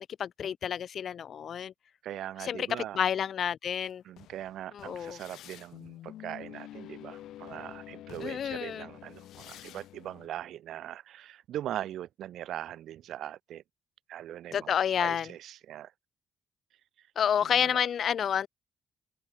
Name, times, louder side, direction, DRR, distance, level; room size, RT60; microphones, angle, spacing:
voice 1, 0.0-1.7 2.4-4.0 4.7-5.2 8.2-8.9 14.5-15.3 17.2-18.5, left 8 dB, 60° left, 0.4 m, -29 dB
voice 2, 2.0-3.0 4.0-13.6 14.1-15.9 17.5-17.8, right 12 dB, 75° right, 1.6 m, -41 dB
sound 1, 3.8-10.3, left 13 dB, 80° left, 4.9 m, -48 dB
cardioid pair, 90°, 0 cm